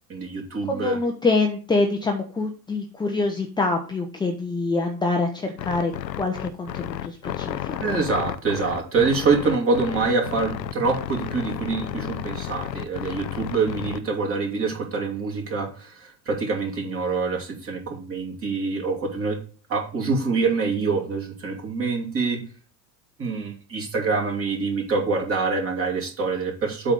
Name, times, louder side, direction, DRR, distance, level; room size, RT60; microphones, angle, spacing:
voice 1, 0.1-1.0 7.5-19.4 19.7-22.4 23.2-26.9, right 4 dB, 25° right, 0 dB, 2.7 m, -25 dB
voice 2, 0.7-5.9 6.2-8.0, left 3 dB, 10° left, 2 dB, 0.8 m, -25 dB
sound 1, 5.6-14.0, left 11 dB, 80° left, 0.7 m, -32 dB
8.1 x 3.8 x 6.4 m, 0.40 s
figure-of-eight pair, 80°, 50 cm